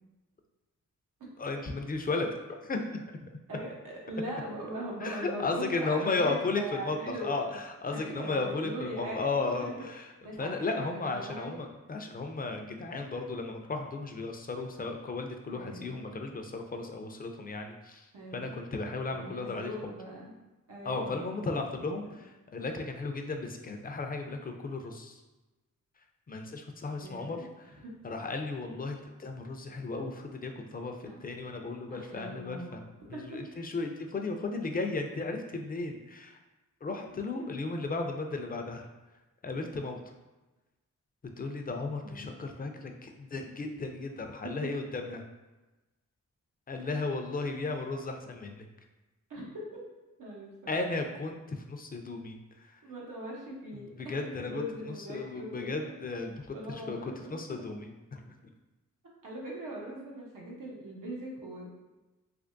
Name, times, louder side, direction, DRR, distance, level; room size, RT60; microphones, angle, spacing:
voice 1, 1.4-2.3 2.6-3.2 5.0-10.1 10.4-18.1 18.3-19.7 20.8-25.2 26.3-27.7 28.0-32.8 33.1-36.4 36.8-38.9 39.4-40.0 41.4-45.2 46.7-48.7 50.7-52.7 53.8-58.3, left 3 dB, 30° left, 4 dB, 0.4 m, -35 dB
voice 2, 3.5-7.4 7.9-9.2 9.4-9.9 10.2-11.6 15.5-16.1 18.1-18.5 19.1-20.3 20.7-21.6 21.8-22.1 27.0-27.5 27.8-27.9 31.0-31.2 31.9-32.8 33.1-33.4 42.0-42.3 46.8-46.9 49.3-49.5 50.2-50.7 52.8-55.9 56.5-57.4 59.2-61.7, right 1 dB, 90° right, -3 dB, 0.9 m, -41 dB
3.4 x 3.1 x 2.5 m, 1.1 s
cardioid pair, 75°, 32 cm